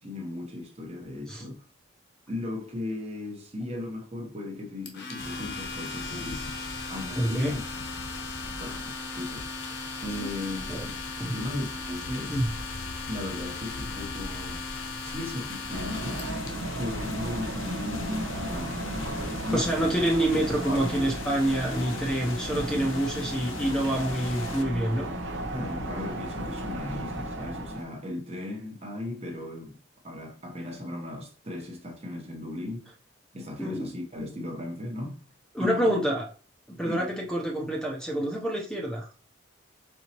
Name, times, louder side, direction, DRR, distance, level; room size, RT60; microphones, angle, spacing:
voice 1, 0.0-1.7 2.3-6.5 6.9-7.6 8.6-9.7 10.0-12.4 13.1-14.7 15.0-16.3 16.8-19.8 20.6-21.0 25.5-29.8 30.0-32.9 33.3-35.2 35.6-36.0 36.8-37.1, left 2 dB, 30° right, 0.9 m, -37 dB
Domestic sounds home sounds, 4.9-16.5, left 3 dB, 55° left, 1.0 m, -39 dB
sound 1, 5.2-24.6, left 4 dB, 85° left, 0.7 m, -41 dB
voice 2, 7.2-7.6 10.7-10.8 11.2-11.3 12.3-12.5 19.5-25.1 33.6-34.0 35.5-36.2 36.7-39.1, right 1 dB, 5° left, 0.6 m, -27 dB
sound 2, 15.7-27.8, right 1 dB, 70° right, 0.7 m, -34 dB
4.5 x 4.1 x 2.9 m
head